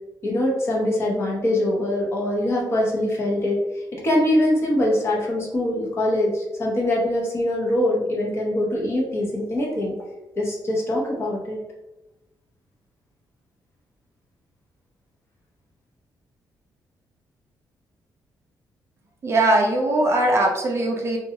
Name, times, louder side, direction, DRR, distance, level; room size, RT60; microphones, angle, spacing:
voice 1, 0.2-3.6 3.9-9.9 10.4-11.6, left 1 dB, 35° left, -2 dB, 0.8 m, -23 dB
voice 2, 19.2-21.2, right 1 dB, 35° right, 1 dB, 0.4 m, -20 dB
2.4 x 2.2 x 2.8 m, 0.98 s
cardioid pair, 145°, 8 cm